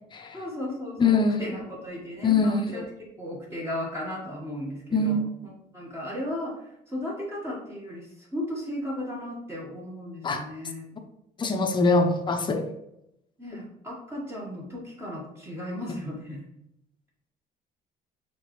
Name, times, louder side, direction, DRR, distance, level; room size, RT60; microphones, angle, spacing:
voice 1, 0.3-5.2 5.7-10.9 13.4-16.4, left 1 dB, 15° right, 1.5 m, -35 dB
voice 2, 1.0-1.4 2.2-2.8 4.9-5.2 10.2-10.4 11.4-12.7, left 3 dB, 25° left, 0.7 m, -23 dB
4.8 x 3.4 x 3.1 m
cardioid pair, 110°, 17 cm